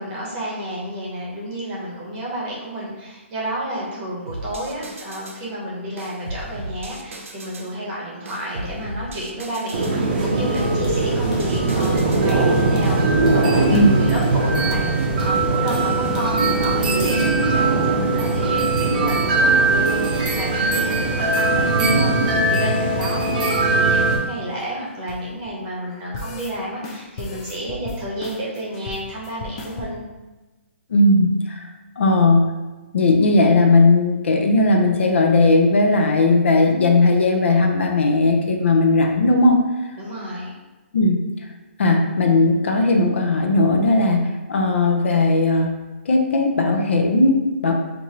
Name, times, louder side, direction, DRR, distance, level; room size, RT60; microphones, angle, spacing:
voice 1, 0.0-21.7 21.9-30.0 40.0-40.5, equal, 20° right, -5 dB, 0.9 m, -31 dB
sound 1, 4.3-5.4 6.0-7.7 8.3-10.0 10.5-12.3 12.8-13.3, right 1 dB, 85° right, 0.7 m, -35 dB
sound 2, 9.7-24.2, right 3 dB, 40° right, 0.6 m, -20 dB
sound 3, 10.5-17.4 17.7-17.8 18.1-18.8 19.0-19.4 19.7-21.3 21.6-25.5 25.9-26.5 26.8-29.9, left 2 dB, 25° left, 0.4 m, -36 dB
voice 2, 30.9-31.7 32.0-32.5 32.9-39.7 40.9-41.2 41.8-45.7 46.1-47.7, left 2 dB, 65° left, 2 dB, 0.6 m, -17 dB
4.5 x 2.6 x 2.9 m, 1.1 s
hypercardioid pair, 165°, 7 cm